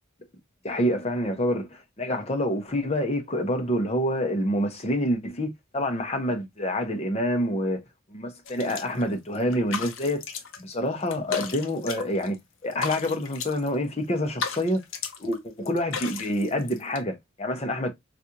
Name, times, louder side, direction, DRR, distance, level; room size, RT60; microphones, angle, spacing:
voice 1, 0.6-7.8 8.1-10.2 10.6-12.4 12.6-14.8 15.2-17.9, equal, 30° left, 0.8 m, -27 dB
sound 1, 8.4-9.1 9.3-10.7 11.0-12.3 12.6-13.7 14.2-15.4 15.6-17.0, left 6 dB, 60° left, 0.7 m, -35 dB
4.0 x 2.5 x 2.8 m
head